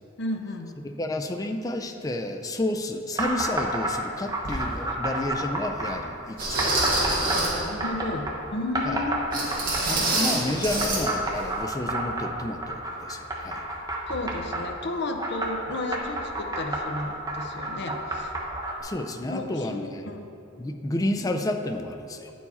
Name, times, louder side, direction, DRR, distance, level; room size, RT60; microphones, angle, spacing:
voice 1, 0.2-0.7 7.5-9.4 10.0-10.3 14.1-18.4 19.3-20.3, left 2 dB, 55° left, 4 dB, 0.6 m, -33 dB
voice 2, 0.8-7.1 8.9-9.0 9.9-13.7 18.8-20.0 20.6-22.3, left 1 dB, 20° left, 5 dB, 0.4 m, -31 dB
sound 1, 3.2-3.9 4.3-6.0 6.6-8.4 8.7-10.1 10.8-14.6 15.2-18.8, right 2 dB, 20° right, 0.8 m, -30 dB
sound 2, 4.4-4.6 5.3-5.4 6.4-7.7 9.3-11.0 11.3-11.5 11.9-12.0, right 2 dB, 45° right, 1.6 m, -26 dB
9.6 x 4.6 x 4.1 m, 2.7 s
head